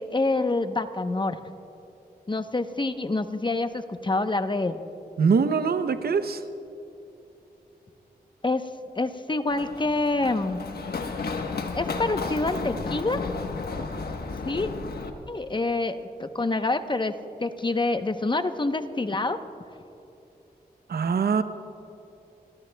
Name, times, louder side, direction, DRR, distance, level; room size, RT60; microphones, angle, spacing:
voice 1, 0.0-1.4 2.3-4.8 8.4-8.7 9.0-10.6 11.7-13.2 14.5-14.7 15.3-17.1 17.4-19.4, left 2 dB, 30° left, 9 dB, 0.9 m, -26 dB
voice 2, 5.2-6.4 20.9-21.4, right 5 dB, 70° right, 10 dB, 0.7 m, -23 dB
Run, 9.5-15.1, left 4 dB, 70° left, 1.2 m, -33 dB
30.0 x 14.5 x 2.3 m, 2.9 s
cardioid pair, 55°, 17 cm